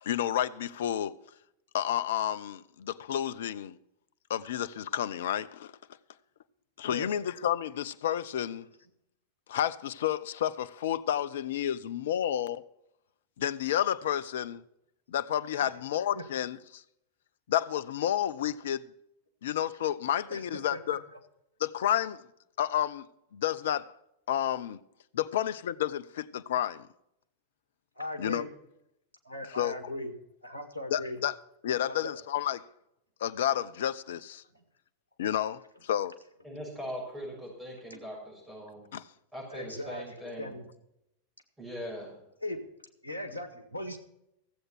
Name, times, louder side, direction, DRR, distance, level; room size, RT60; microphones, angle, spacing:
voice 1, 0.0-1.2 1.7-3.8 4.3-5.7 6.8-8.6 9.5-12.6 13.4-14.6 15.1-16.8 17.5-18.9 19.4-21.0 21.6-22.3 22.6-23.1 23.3-23.9 24.3-24.8 25.1-26.9 28.2-28.4 29.4-29.9 30.9-31.4 31.6-32.6 33.2-34.4 35.2-36.1 38.9-39.1, left 10 dB, 60° left, 0.5 m, -30 dB
voice 2, 28.0-28.5 29.2-30.1 30.4-31.2 31.8-32.1 34.5-34.6 37.9-38.0 39.5-40.0 40.4-40.6 42.4-42.6 43.0-44.0, left 1 dB, 90° right, 1.7 m, -38 dB
voice 3, 36.4-38.8 39.3-40.6 41.6-42.1, equal, 10° right, 6.4 m, -40 dB
15.0 x 7.9 x 5.9 m
figure-of-eight pair, 90°, 0 cm